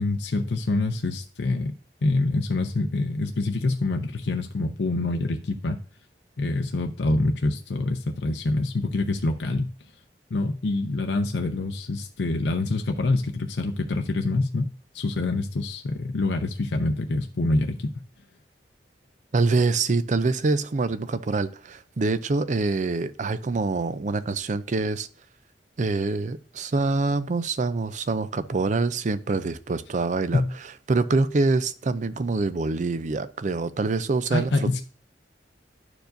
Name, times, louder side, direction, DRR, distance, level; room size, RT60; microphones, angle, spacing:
voice 1, 0.0-1.7 2.0-5.8 6.4-9.7 10.3-17.9 30.3-30.5 34.3-34.8, left 2 dB, 75° left, 0.6 m, -26 dB
voice 2, 19.3-25.1 25.8-30.4 30.9-34.7, right 3 dB, 45° right, 0.4 m, -25 dB
11.5 x 4.7 x 2.6 m
head